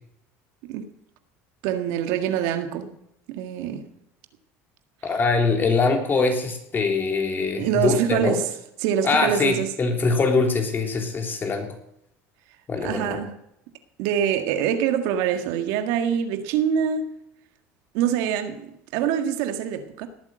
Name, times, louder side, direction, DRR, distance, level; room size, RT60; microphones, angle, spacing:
voice 1, 1.6-2.9 3.3-3.8 7.6-8.4 8.8-9.7 12.8-13.3 14.0-17.1 17.9-20.1, right 8 dB, 75° right, 1.7 m, -25 dB
voice 2, 5.0-8.4 9.0-11.8 12.7-13.2, left 4 dB, 30° left, 3.5 m, -23 dB
18.5 x 8.8 x 7.7 m
supercardioid pair, 105°, 7 cm